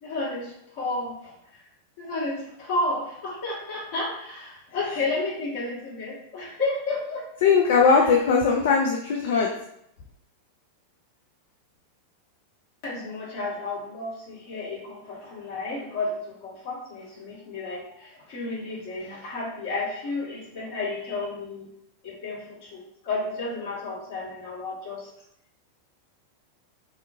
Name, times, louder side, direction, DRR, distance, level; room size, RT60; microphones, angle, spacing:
voice 1, 0.0-1.3 2.0-7.2 12.8-21.7 22.0-25.1, left 2 dB, 40° left, -6 dB, 1.2 m, -32 dB
voice 2, 7.4-9.5, left 5 dB, 55° left, 0 dB, 0.3 m, -19 dB
2.5 x 2.4 x 2.6 m, 0.75 s
figure-of-eight pair, 90°, 0 cm